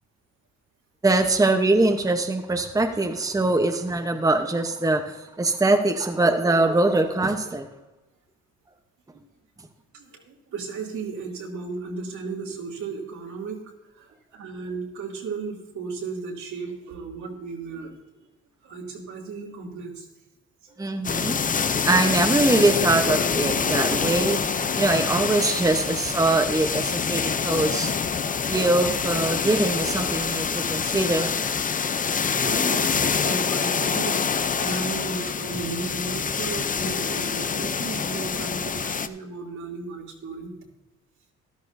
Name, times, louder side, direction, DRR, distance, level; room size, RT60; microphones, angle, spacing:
voice 1, 1.0-7.7 20.8-21.4 21.8-27.9 28.3-31.4, right 2 dB, 10° right, 5 dB, 0.9 m, -23 dB
voice 2, 9.9-17.9 18.6-20.1 20.6-21.1 21.5-21.8 23.9-24.0 24.7-25.0 27.1-27.2 32.0-34.2 34.6-40.5, right 4 dB, 75° right, -2 dB, 2.9 m, -35 dB
sound 1, 21.0-39.1, left 6 dB, 25° left, 0.6 m, -26 dB
13.5 x 12.0 x 2.7 m, 1.1 s
cardioid pair, 90°, 30 cm